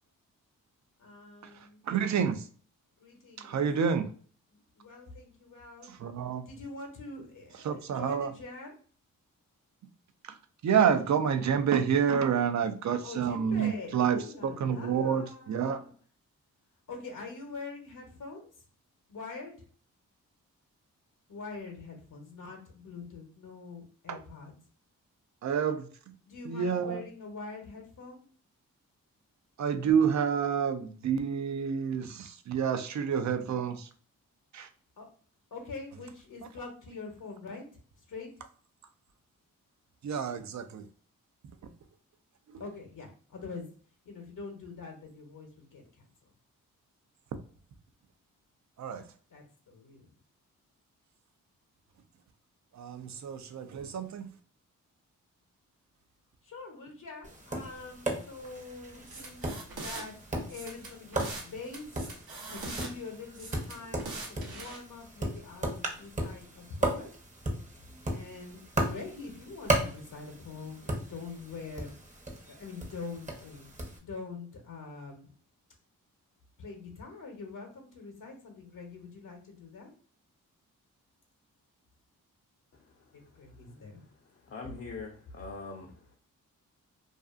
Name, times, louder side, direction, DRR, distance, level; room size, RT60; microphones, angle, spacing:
voice 1, 1.0-1.8 3.0-3.7 4.5-5.9 6.5-8.8 13.0-15.9 16.9-18.5 19.1-19.7 21.3-24.6 26.3-28.2 35.0-35.1 35.5-37.7 38.0-38.3 42.6-43.7 44.0-46.3 49.3-50.1 56.4-61.9 62.5-67.2 68.1-72.0 72.5-73.7 74.0-75.3 76.6-79.9 83.1-84.0, left 4 dB, 60° left, 0.9 m, -44 dB
voice 2, 1.8-2.4 3.4-4.1 6.0-6.5 7.6-8.3 10.6-15.8 24.1-24.2 25.4-25.9 26.5-27.0 29.6-33.9 34.5-34.7 40.0-40.9 48.8-49.0 52.7-54.3, right 7 dB, 55° right, 0.5 m, -28 dB
Tap, 57.2-74.0, right 1 dB, 20° right, 0.7 m, -36 dB
sound 1, 59.1-60.0 60.5-61.5 61.7-62.9 63.3-64.8, right 3 dB, 90° right, 0.8 m, -41 dB
voice 3, 84.4-85.9, left 4 dB, 40° left, 0.6 m, -42 dB
2.5 x 2.4 x 2.3 m
cardioid pair, 55°, 35 cm